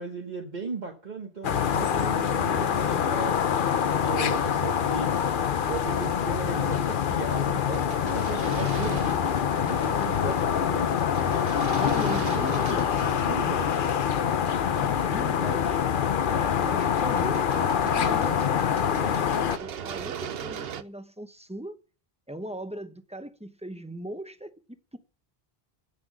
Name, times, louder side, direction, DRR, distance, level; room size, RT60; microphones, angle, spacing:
voice 1, 0.0-5.2 5.7-10.3 10.7-11.1 13.0-13.9, right 3 dB, 45° right, 1.5 m, -36 dB
sound 1, 1.4-19.6, left 8 dB, 60° left, 0.8 m, -25 dB
sound 2, 7.1-15.0 16.4-20.8, right 8 dB, 70° right, 0.9 m, -40 dB
voice 2, 9.9-10.4 11.8-13.0 14.7-15.8 16.3-21.8 22.3-24.5 24.9-25.0, right 1 dB, 5° right, 0.8 m, -39 dB
15.0 x 6.2 x 6.2 m
omnidirectional pair, 1.0 m